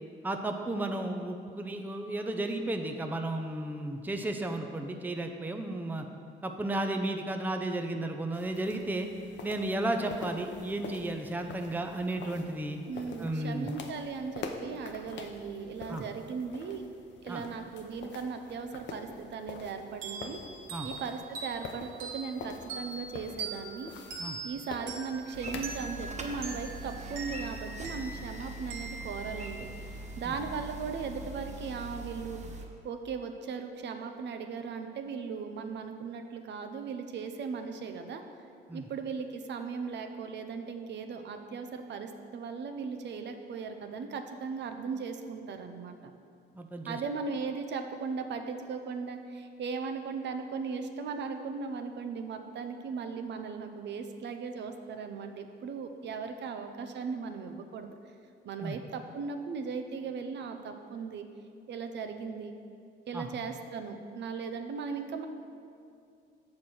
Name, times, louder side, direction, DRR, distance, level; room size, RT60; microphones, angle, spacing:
voice 1, 0.2-6.1 6.4-9.1 9.4-12.8 13.2-13.7 15.9-16.0 17.3-17.4 20.7-20.9 24.2-24.4 30.2-30.4 38.7-38.9 46.5-47.0 58.6-58.8 63.1-63.3, right 1 dB, 10° right, 5 dB, 0.5 m, -33 dB
sound 1, 8.3-27.3, left 4 dB, 65° left, 0.7 m, -46 dB
voice 2, 12.9-16.8 17.2-20.4 20.8-23.9 24.4-38.2 38.7-46.0 46.9-57.9 58.4-61.2 61.7-62.5 63.1-65.3, right 5 dB, 60° right, 6 dB, 0.6 m, -38 dB
sound 2, 20.0-30.3, right 3 dB, 85° right, 1.3 m, -43 dB
sound 3, 25.3-32.6, right 2 dB, 35° right, 0.9 m, -42 dB
7.2 x 4.3 x 6.2 m, 2.4 s
cardioid pair, 90°, 20 cm